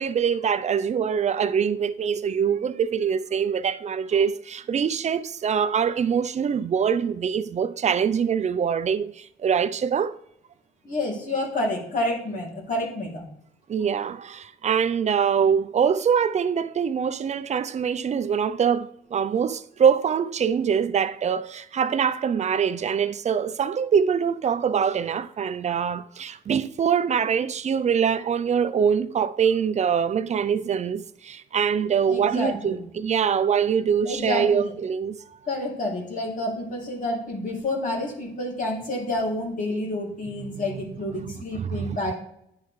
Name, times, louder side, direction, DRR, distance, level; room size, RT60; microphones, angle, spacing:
voice 1, 0.0-10.1 13.7-35.2 40.4-40.5 41.6-42.0, right 7 dB, 35° right, 0.4 m, -24 dB
voice 2, 10.8-13.2 32.1-32.9 34.0-34.7 35.5-42.1, left 1 dB, 40° left, 2.8 m, -29 dB
10.5 x 4.6 x 3.2 m
cardioid pair, 90°, 20 cm